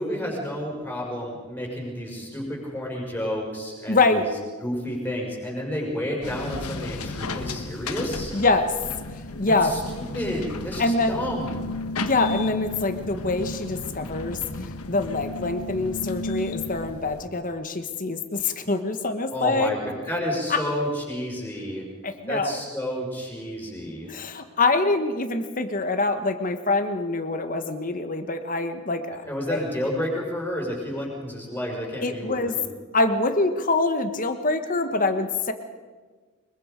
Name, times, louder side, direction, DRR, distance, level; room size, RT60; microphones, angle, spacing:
voice 1, 0.0-4.3 4.6-8.3 9.5-11.6 19.3-21.9 22.3-24.1 29.3-32.7, equal, 10° left, -2 dB, 5.3 m, -30 dB
voice 2, 3.9-4.2 8.3-8.7 9.4-9.7 10.8-11.2 12.0-19.7 20.5-20.6 22.0-22.6 24.1-29.2 29.5-29.6 32.0-32.6 32.9-35.5, left 3 dB, 35° left, 8 dB, 1.3 m, -25 dB
sound 1, 6.2-17.3, left 2 dB, 80° left, 1.4 m, -33 dB
24.0 x 22.5 x 5.2 m, 1.4 s
head